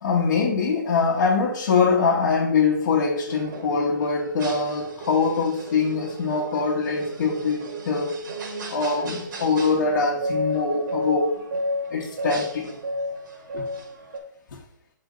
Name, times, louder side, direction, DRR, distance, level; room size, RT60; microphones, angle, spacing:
voice 1, 0.0-8.2 8.7-11.5 11.9-12.7 13.5-13.7 14.5-14.6, left 4 dB, 60° left, -4 dB, 1.2 m, -23 dB
sound 1, 3.3-14.2, equal, 75° right, 1.8 m, -33 dB
6.5 x 4.3 x 3.8 m, 0.65 s
hypercardioid pair, 160°, 11 cm